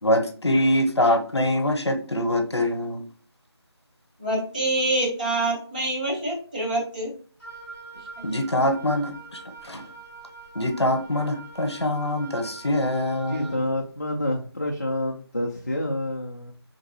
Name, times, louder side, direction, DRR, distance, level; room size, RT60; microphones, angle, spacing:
voice 1, 0.0-3.0 8.2-9.9 10.5-13.6, left 1 dB, 75° left, 7 dB, 0.8 m, -24 dB
voice 2, 4.2-7.1, right 2 dB, 20° right, -6 dB, 0.9 m, -26 dB
Wind instrument woodwind instrument, 7.4-13.6, right 4 dB, 5° left, 0.7 m, -43 dB
voice 3, 13.3-16.5, left 1 dB, 35° left, 0 dB, 0.4 m, -28 dB
3.8 x 2.9 x 2.7 m, 0.43 s
figure-of-eight pair, 170°, 14 cm